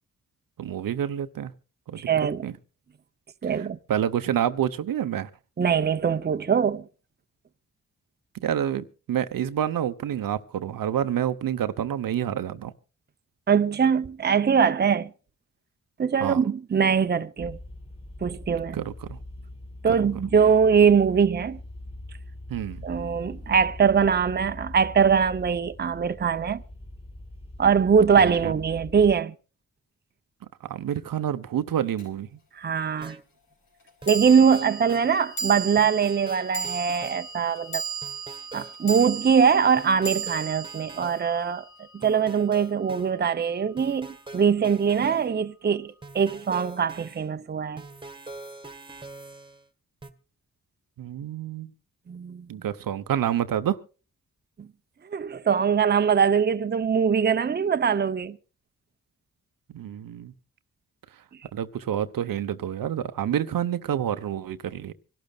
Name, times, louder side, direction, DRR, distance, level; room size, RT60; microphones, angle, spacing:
voice 1, 0.6-1.5 1.9-2.0 2.4-2.6 3.5-5.3 8.4-12.7 16.2-16.4 18.7-19.2 19.9-20.0 22.5-22.8 28.2-28.5 30.6-32.4 51.0-51.7 52.5-53.8 59.7-60.3 61.5-64.9, right 10 dB, 85° right, 0.9 m, -28 dB
voice 2, 2.0-2.4 3.4-3.8 5.6-6.9 13.5-15.1 16.0-17.6 18.2-18.8 19.8-21.6 22.8-26.6 27.6-29.3 32.6-33.2 34.1-37.8 38.5-41.6 41.9-47.8 52.1-52.5 54.6-54.7 55.1-58.4, right 6 dB, 30° right, 0.7 m, -22 dB
sound 1, 17.4-29.2, left 1 dB, 20° left, 2.8 m, -42 dB
sound 2, 32.0-32.1 34.1-42.5, right 5 dB, 75° left, 5.5 m, -35 dB
sound 3, 33.0-33.2 34.0-35.1 35.8-37.2 38.0-39.1 39.8-41.2 42.0-43.1 43.8-45.3 46.0-47.3 47.8-49.7 50.0-50.1, right 2 dB, 15° right, 1.5 m, -43 dB
25.5 x 12.0 x 2.4 m
cardioid pair, 100°, 33 cm